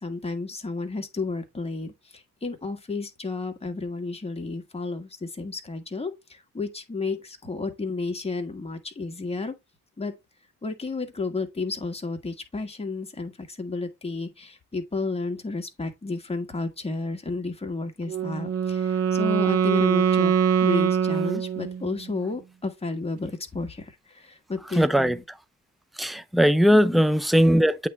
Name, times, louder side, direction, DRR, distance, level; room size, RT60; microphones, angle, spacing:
voice 1, 0.0-9.5 10.0-10.1 10.6-20.3 20.6-25.2 26.7-27.0, left 3 dB, 20° left, 1.7 m, -32 dB
Wind instrument woodwind instrument, 18.1-22.0, right 7 dB, 50° right, 0.8 m, -23 dB
voice 2, 24.8-25.2 26.0-27.9, equal, ahead, 0.6 m, -19 dB
8.4 x 3.5 x 4.2 m
cardioid pair, 90°, 30 cm